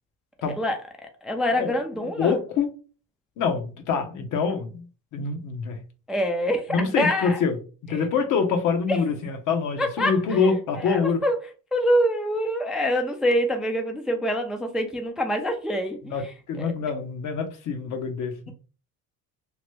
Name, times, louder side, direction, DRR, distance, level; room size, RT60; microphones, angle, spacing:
voice 1, 0.5-2.4 6.1-7.4 7.9-8.1 8.9-9.0 9.8-10.5 10.8-11.4 11.7-16.1 16.6-16.7, equal, ahead, 0.3 m, -25 dB
voice 2, 2.2-2.7 3.4-4.8 5.1-5.8 6.7-7.6 7.8-11.2 16.1-18.5, left 5 dB, 60° left, 0.8 m, -25 dB
2.9 x 2.1 x 3.1 m
cardioid pair, 120°, 34 cm